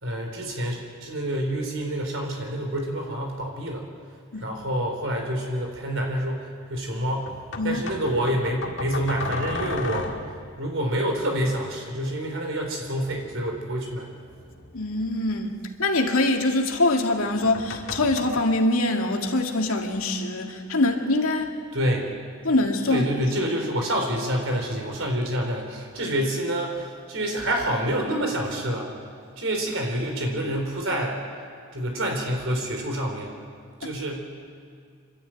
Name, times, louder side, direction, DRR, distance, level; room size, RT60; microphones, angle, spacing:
voice 1, 0.0-3.9 4.4-10.2 10.6-14.1 21.7-22.1 22.9-28.9 29.4-31.2 31.7-33.3 33.8-34.2, right 1 dB, 60° right, 1 dB, 4.0 m, -27 dB
sound 1, 5.8-5.9 7.3-10.6 12.9-15.6 17.2-18.4, left 2 dB, 55° left, 2.0 m, -35 dB
voice 2, 14.7-15.5 15.8-21.5 22.4-23.1, left 2 dB, 75° left, 2 dB, 2.2 m, -23 dB
27.0 x 12.5 x 9.1 m, 2.3 s
head